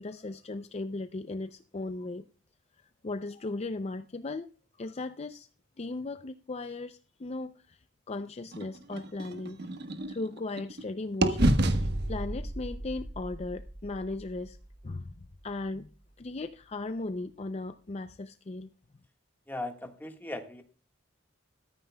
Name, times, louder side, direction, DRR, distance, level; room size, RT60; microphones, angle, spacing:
voice 1, 0.0-2.2 3.0-4.5 4.8-5.5 5.8-9.6 10.1-14.6 14.8-15.9 16.2-18.7, left 2 dB, 35° left, 10 dB, 0.5 m, -37 dB
sound 1, 8.5-10.8 11.2-15.2, right 1 dB, 55° right, 1.3 m, -31 dB
voice 2, 19.5-20.6, left 2 dB, 10° left, 4 dB, 1.5 m, -38 dB
14.5 x 13.5 x 2.2 m, 0.38 s
head